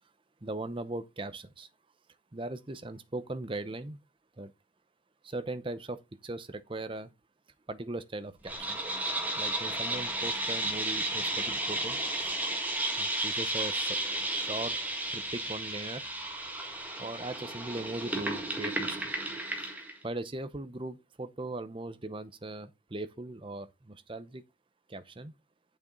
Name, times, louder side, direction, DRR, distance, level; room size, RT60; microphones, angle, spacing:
voice 1, 0.4-1.7 2.3-4.0 4.4-4.5 5.2-7.1 7.7-8.8 9.4-12.0 12.2-12.3 13.0-14.0 14.4-14.8 15.1-16.0 17.0-19.0 20.0-24.4 24.9-25.3, right 2 dB, 25° right, 0.7 m, -39 dB
sound 1, 8.5-20.0, right 1 dB, 10° right, 1.7 m, -33 dB
8.6 x 6.9 x 3.8 m
head